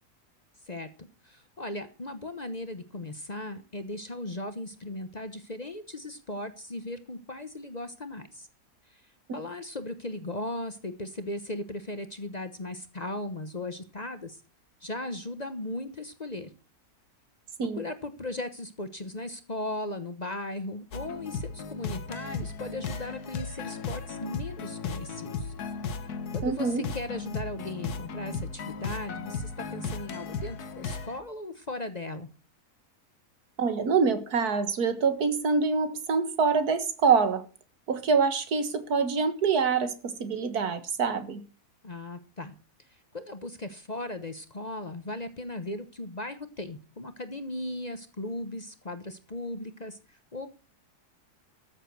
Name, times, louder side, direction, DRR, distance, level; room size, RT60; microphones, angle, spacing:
voice 1, 0.7-8.5 8.9-9.0 9.3-14.4 14.8-16.5 17.8-25.5 26.0-32.3 41.8-42.5 43.1-50.5, left 1 dB, 30° left, 1.0 m, -37 dB
sound 1, 20.9-31.2, left 4 dB, 85° left, 1.7 m, -36 dB
voice 2, 26.4-26.8 33.6-37.4 37.9-41.4, right 5 dB, 80° right, 2.0 m, -25 dB
13.5 x 7.4 x 6.2 m
omnidirectional pair, 1.6 m